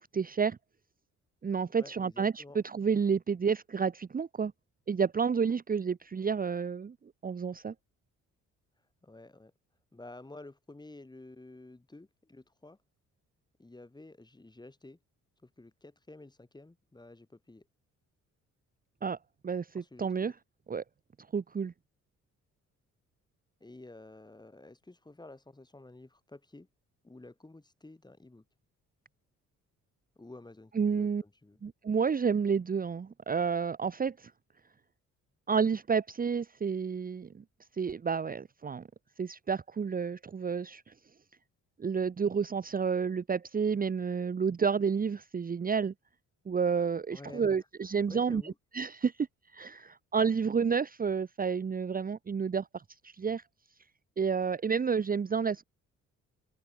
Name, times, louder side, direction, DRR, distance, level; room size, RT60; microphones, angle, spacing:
voice 1, 0.1-0.6 1.4-4.5 4.9-6.9 7.2-7.7 19.0-19.2 19.4-20.3 20.7-20.8 21.3-21.7 30.7-31.2 31.6-34.3 35.5-37.4 37.8-38.8 39.2-40.9 41.8-45.9 46.5-49.3 49.5-53.4 54.2-55.6, right 6 dB, 30° right, 0.9 m, -30 dB
voice 2, 1.7-2.6 9.0-9.5 9.9-12.8 13.6-15.0 15.4-17.7 19.7-20.3 23.6-26.7 27.0-28.4 30.2-31.6 47.1-47.5 48.1-48.6, left 2 dB, 15° left, 3.7 m, -51 dB
open air
cardioid pair, 90°, 30 cm